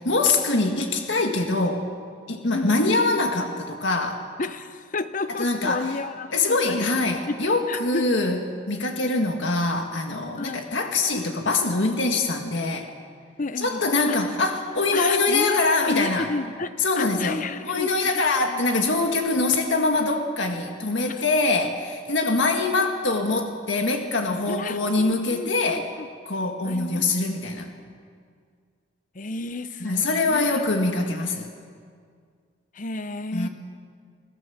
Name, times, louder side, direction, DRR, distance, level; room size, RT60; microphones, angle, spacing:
voice 1, 0.0-1.9 2.3-4.3 5.4-6.0 6.3-12.9 13.6-16.3 16.8-25.9 26.3-27.7 29.8-31.5 33.3-33.5, left 3 dB, 90° left, 3 dB, 1.9 m, -24 dB
voice 2, 2.5-3.0 4.4-8.2 10.4-10.7 13.4-13.8 14.9-17.9 18.4-18.7 24.5-26.1 26.6-27.1 29.1-30.6 32.7-33.5, left 3 dB, 45° left, 12 dB, 0.8 m, -32 dB
27.0 x 17.0 x 7.3 m, 2.1 s
head